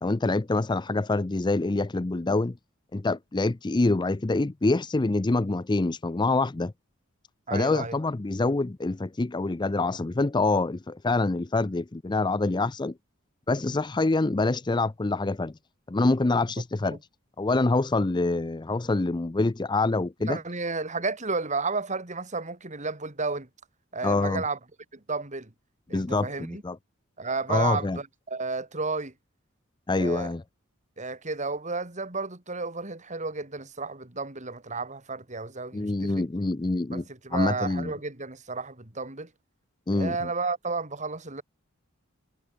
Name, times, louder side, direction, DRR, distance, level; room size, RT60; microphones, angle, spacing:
voice 1, 0.0-2.5 2.9-6.7 7.5-12.9 13.5-15.5 15.9-17.0 17.4-20.4 24.0-24.4 25.9-26.8 27.5-28.0 29.9-30.4 35.7-37.0 37.3-37.9 39.9-40.3, left 2 dB, 20° left, 0.5 m, -26 dB
voice 2, 7.5-8.0 16.8-17.0 20.2-23.5 23.9-24.6 24.9-25.5 25.9-26.6 27.2-29.1 29.9-30.3 31.0-36.2 36.9-39.3 39.9-41.4, right 3 dB, 35° right, 2.9 m, -32 dB
head